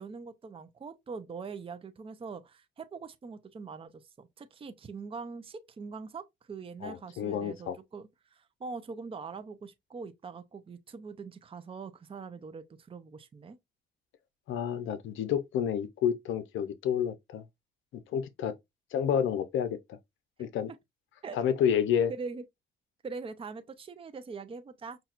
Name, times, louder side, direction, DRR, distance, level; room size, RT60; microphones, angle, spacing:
voice 1, 0.0-13.6 21.2-21.4 22.1-22.4 23.0-25.0, right 4 dB, 30° right, 0.6 m, -42 dB
voice 2, 6.8-7.8 14.5-17.4 17.9-18.5 18.9-20.0 20.4-20.7 21.3-22.1, left 8 dB, 80° left, 0.6 m, -29 dB
5.7 x 2.7 x 2.4 m
cardioid pair, 90°, 20 cm